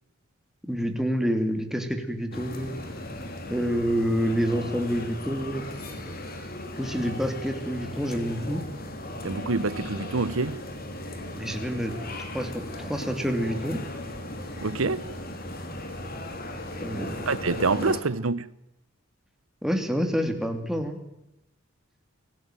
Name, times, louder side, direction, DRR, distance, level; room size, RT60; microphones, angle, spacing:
voice 1, 0.7-2.7 3.5-5.7 6.8-8.6 11.4-11.9 12.3-13.8 16.8-17.3 17.8-17.9 19.6-21.0, equal, ahead, 2.8 m, -28 dB
sound 1, 2.3-18.0, left 1 dB, 45° left, 3.5 m, -37 dB
voice 2, 9.2-10.6 14.6-15.1 17.3-18.5, right 3 dB, 85° right, 1.0 m, -26 dB
25.0 x 16.5 x 9.1 m
head